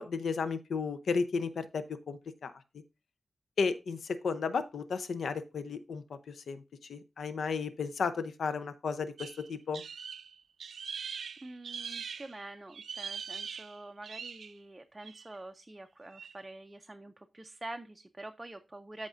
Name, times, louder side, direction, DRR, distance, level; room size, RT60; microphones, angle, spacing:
voice 1, 0.0-2.5 3.6-6.6 6.9-9.8, left 5 dB, 80° left, 11 dB, 0.7 m, -34 dB
sound 1, 9.2-12.4 12.7-14.6 15.0-15.4 16.1-16.3, right 6 dB, 85° right, 0.4 m, -42 dB
voice 2, 11.4-19.1, right 2 dB, 15° right, 5 dB, 0.4 m, -46 dB
13.5 x 4.9 x 2.6 m, 0.26 s
wide cardioid pair, 160°, 0 cm